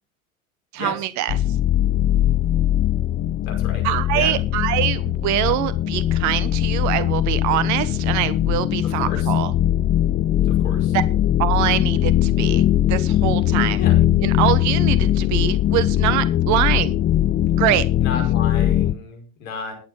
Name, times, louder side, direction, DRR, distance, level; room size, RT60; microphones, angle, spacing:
voice 1, 0.7-1.4 3.8-9.5 10.9-11.0 11.4-13.8 14.2-17.0 17.6-17.8, right 13 dB, 40° right, 16 dB, 1.0 m, -24 dB
sound 1, 1.3-18.9, left 12 dB, 20° left, 0.5 m, -20 dB
voice 2, 3.4-3.8 4.1-4.3 8.8-9.3 10.6-11.0 13.8-13.9 18.0-19.7, left 5 dB, 70° left, 3 dB, 5.7 m, -32 dB
21.0 x 7.4 x 3.8 m, 0.34 s
hypercardioid pair, 90°, 42 cm